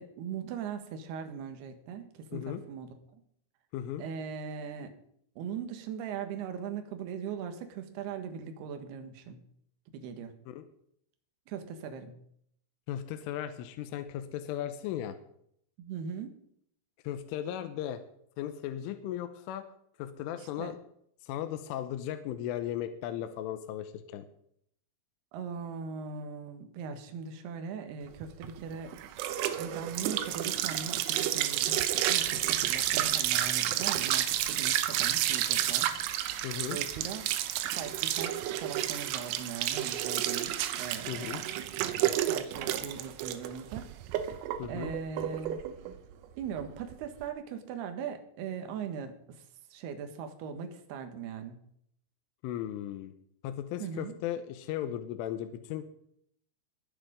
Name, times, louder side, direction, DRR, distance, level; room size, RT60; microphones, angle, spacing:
voice 1, 0.0-3.2 4.0-4.9 5.4-9.4 9.9-10.4 11.5-12.1 15.8-16.4 20.3-20.7 25.3-28.9 29.6-35.9 36.7-37.3 37.7-41.4 41.8-43.9 44.3-45.6 46.4-49.4 49.7-51.6 53.8-54.1, right 6 dB, 65° right, 7 dB, 2.9 m, -40 dB
voice 2, 12.9-15.2 17.0-18.0 18.4-19.6 20.0-20.8 21.2-24.3 36.4-36.8 41.1-41.4 44.6-44.9 52.4-53.1 53.4-55.8, left 11 dB, 80° left, 8 dB, 3.2 m, -36 dB
sound 1, 28.2-47.2, right 12 dB, 85° right, 3.5 m, -31 dB
21.0 x 7.7 x 5.1 m, 0.69 s
omnidirectional pair, 6.0 m